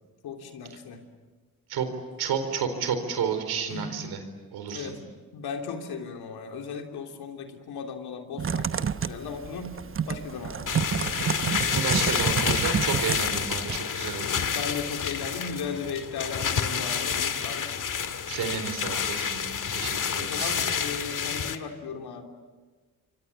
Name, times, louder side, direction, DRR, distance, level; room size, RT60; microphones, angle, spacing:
voice 1, 0.2-1.0 3.7-3.9 4.7-9.8 10.1-10.9 14.4-17.7 20.1-22.2, left 5 dB, 85° left, 4 dB, 3.3 m, -36 dB
voice 2, 2.2-4.2 4.5-4.9 11.6-14.4 18.3-20.6, right 6 dB, 85° right, 8 dB, 4.3 m, -31 dB
Typing, 8.4-13.8, right 7 dB, 35° right, 0.9 m, -30 dB
sound 1, 10.7-21.6, left 7 dB, 55° left, 1.9 m, -29 dB
28.0 x 24.5 x 8.4 m, 1.3 s
cardioid pair, 65°, 37 cm